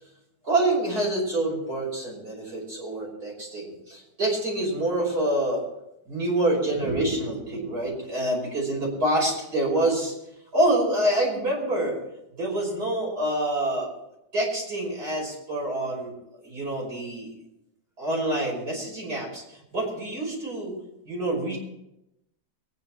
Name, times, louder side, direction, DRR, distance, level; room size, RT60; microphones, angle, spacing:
voice 1, 0.4-5.6 6.1-10.1 10.5-12.0 12.4-13.9 14.3-16.1 16.4-17.3 18.0-20.8 21.1-21.6, right 1 dB, 75° right, -3 dB, 6.1 m, -26 dB
23.0 x 10.0 x 4.5 m, 0.86 s
omnidirectional pair, 1.7 m